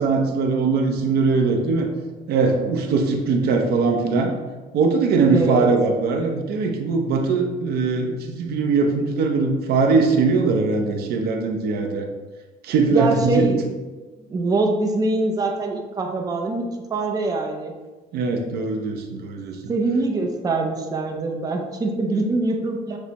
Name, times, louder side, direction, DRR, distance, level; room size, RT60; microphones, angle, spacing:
voice 1, 0.0-1.9 2.3-4.3 4.7-12.1 12.6-13.5 18.1-19.6, right 4 dB, 70° right, 4 dB, 0.5 m, -21 dB
voice 2, 5.2-5.7 12.9-13.6 14.3-17.8 19.7-23.0, right 2 dB, 20° right, 2 dB, 0.5 m, -24 dB
6.2 x 2.1 x 2.8 m, 1.2 s
cardioid pair, 110°, 17 cm